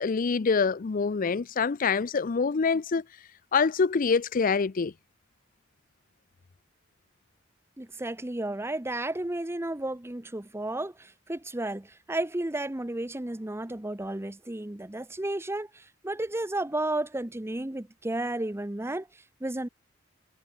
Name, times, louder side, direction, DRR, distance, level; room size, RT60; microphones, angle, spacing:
voice 1, 0.0-3.0 3.5-4.9, left 5 dB, 45° left, 0.5 m, -25 dB
voice 2, 7.8-19.1 19.4-19.7, right 1 dB, 10° right, 0.8 m, -33 dB
head